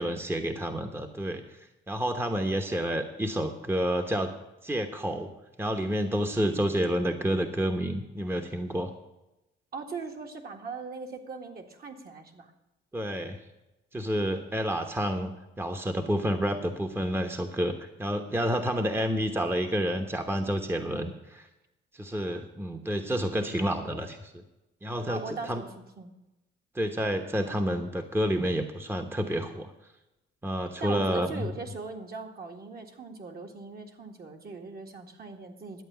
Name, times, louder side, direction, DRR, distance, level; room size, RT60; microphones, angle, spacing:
voice 1, 0.0-4.3 4.6-5.3 5.6-8.9 12.9-13.4 13.9-15.3 15.6-21.5 21.9-24.4 24.8-25.6 26.7-29.7 30.4-31.5, equal, 10° right, 5 dB, 1.0 m, -29 dB
voice 2, 9.7-12.5 25.1-25.7 26.0-26.1 30.8-35.8, right 4 dB, 50° right, 3 dB, 2.0 m, -39 dB
11.5 x 8.3 x 6.9 m, 0.97 s
cardioid pair, 90°, 20 cm